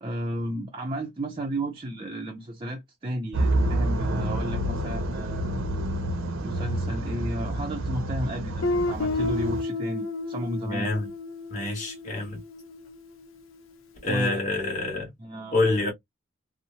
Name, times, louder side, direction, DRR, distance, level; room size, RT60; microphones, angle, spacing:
voice 1, 0.0-5.5 6.4-10.9 14.1-14.4 15.2-15.6, right 1 dB, 25° right, 0.5 m, -33 dB
sound 1, 3.3-9.6, right 1 dB, 85° right, 0.7 m, -28 dB
Guitar, 8.6-13.3, left 3 dB, 75° left, 0.6 m, -31 dB
voice 2, 10.6-11.1 11.5-12.4 14.0-15.1 15.5-15.9, left 2 dB, 40° left, 1.4 m, -27 dB
2.9 x 2.0 x 2.6 m
head